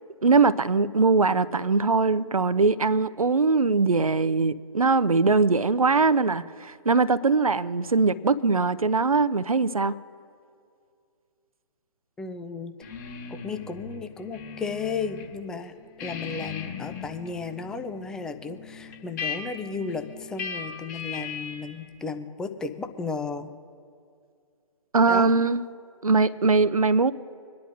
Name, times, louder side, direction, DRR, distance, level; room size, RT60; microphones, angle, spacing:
voice 1, 0.2-9.9 24.9-25.6 26.0-27.1, right 4 dB, 90° right, 14 dB, 0.6 m, -21 dB
voice 2, 12.2-12.7 13.3-23.5 25.1-25.3, left 4 dB, 5° left, 8 dB, 0.4 m, -34 dB
sound 1, 12.8-15.3 15.6-21.8, left 6 dB, 35° left, 2.7 m, -38 dB
26.5 x 10.5 x 2.6 m, 2.3 s
figure-of-eight pair, 135°, 18 cm